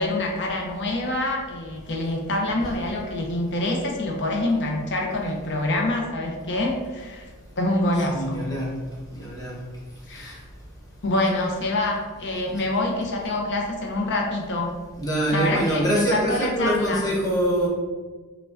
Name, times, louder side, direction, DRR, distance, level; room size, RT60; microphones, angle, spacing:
voice 1, 0.0-7.3 7.6-8.4 10.1-10.4 11.0-14.8 15.3-17.0, left 2 dB, 55° left, 0 dB, 0.6 m, -26 dB
voice 2, 8.1-8.7 9.1-9.6 10.1-10.3 15.0-17.7, right 1 dB, 15° left, -4 dB, 0.8 m, -24 dB
4.8 x 2.2 x 2.5 m, 1.4 s
head